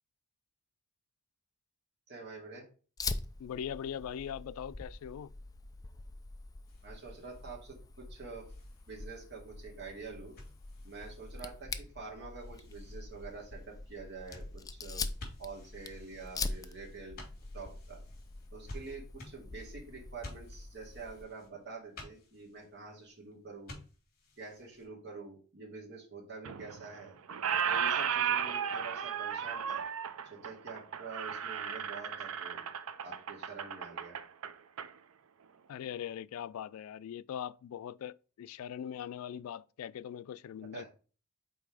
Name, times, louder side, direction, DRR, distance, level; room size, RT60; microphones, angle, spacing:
voice 1, 2.1-2.7 6.8-8.5 8.9-10.3 10.8-15.1 15.4-17.2 17.5-18.0 18.5-23.7 24.4-27.2 27.6-29.8 30.2-32.6 33.0-34.2 40.7-40.9, right 4 dB, 55° right, 2.2 m, -47 dB
Fire, 3.0-21.2, left 3 dB, 15° left, 0.4 m, -44 dB
voice 2, 3.4-5.3 35.7-40.8, left 9 dB, 85° left, 0.3 m, -41 dB
sound 1, 6.7-24.9, left 1 dB, 45° left, 2.9 m, -54 dB
Squeak, 26.4-27.0 27.3-34.9, right 8 dB, 75° right, 0.5 m, -34 dB
5.5 x 4.1 x 4.8 m
head